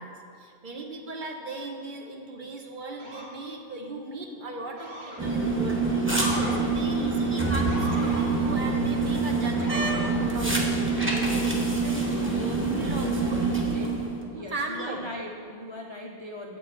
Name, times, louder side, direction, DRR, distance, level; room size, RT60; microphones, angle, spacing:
voice 1, 0.0-9.9 10.2-10.8 11.1-13.9 14.3-15.1, right 2 dB, 50° right, 2 dB, 0.9 m, -37 dB
Motor vehicle (road) / Siren, 3.0-3.4 4.8-5.3 6.1-6.6 7.7-8.3 9.6-10.1, equal, 70° right, 1.7 m, -36 dB
sound 1, 5.2-14.3, right 3 dB, 15° right, 0.8 m, -26 dB
voice 2, 13.3-14.0 14.3-16.6, left 1 dB, 45° left, 1 dB, 0.3 m, -40 dB
7.6 x 6.6 x 4.4 m, 2.3 s
omnidirectional pair, 1.1 m